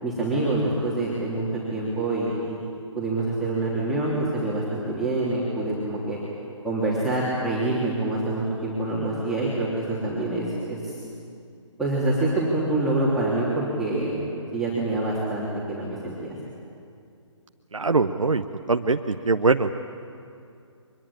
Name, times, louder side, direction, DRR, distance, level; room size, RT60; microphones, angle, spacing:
voice 1, 0.0-1.4 1.7-2.6 2.9-6.2 6.6-11.0 11.8-14.2 14.5-16.4, right 2 dB, ahead, -10 dB, 3.4 m, -26 dB
voice 2, 17.7-19.7, right 3 dB, 90° right, 6 dB, 1.0 m, -22 dB
24.0 x 22.0 x 8.9 m, 2.5 s
figure-of-eight pair, 150°, 16 cm